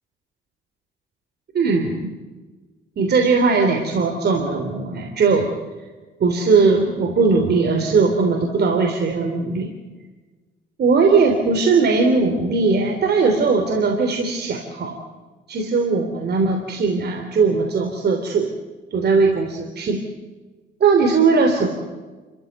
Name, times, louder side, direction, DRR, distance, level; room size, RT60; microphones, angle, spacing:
voice 1, 1.5-2.2 3.0-5.5 6.2-9.7 10.8-15.0 15.5-18.5 18.9-20.0 20.8-21.7, right 4 dB, 55° right, 3 dB, 3.3 m, -19 dB
29.5 x 14.5 x 8.2 m, 1.3 s
cardioid pair, 90°, 20 cm